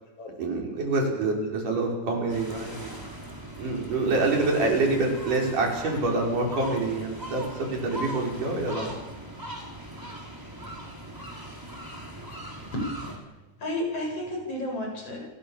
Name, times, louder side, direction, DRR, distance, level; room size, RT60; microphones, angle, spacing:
voice 1, 0.4-3.0 3.6-8.9, right 2 dB, 85° right, 1 dB, 7.2 m, -26 dB
sound 1, 2.3-13.2, right 1 dB, 5° right, 5.1 m, -40 dB
voice 2, 13.6-15.3, left 1 dB, 50° left, 1 dB, 8.9 m, -31 dB
29.5 x 20.0 x 7.4 m, 1.1 s
omnidirectional pair, 3.6 m